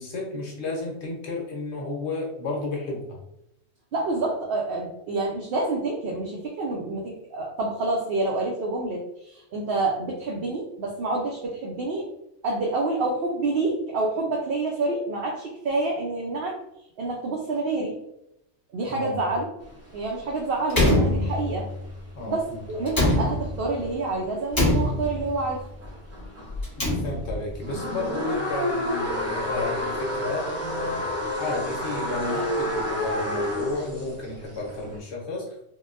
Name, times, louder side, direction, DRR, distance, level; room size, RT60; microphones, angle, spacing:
voice 1, 0.0-3.2 18.9-19.1 22.1-22.6 26.8-31.0 31.4-35.6, left 2 dB, 75° left, -1 dB, 1.2 m, -32 dB
voice 2, 3.9-12.1 12.4-16.6 17.0-18.0 18.7-19.5 19.9-21.7 22.3-25.6, right 2 dB, 60° right, -2 dB, 0.8 m, -28 dB
sound 1, 19.6-26.7 27.1-35.0, left 1 dB, 20° right, 0.5 m, -30 dB
Slam, 20.7-21.8 22.9-23.8 24.5-25.4 26.5-27.5, left 1 dB, 20° left, 0.9 m, -23 dB
3.7 x 2.1 x 2.5 m, 0.82 s
omnidirectional pair, 1.2 m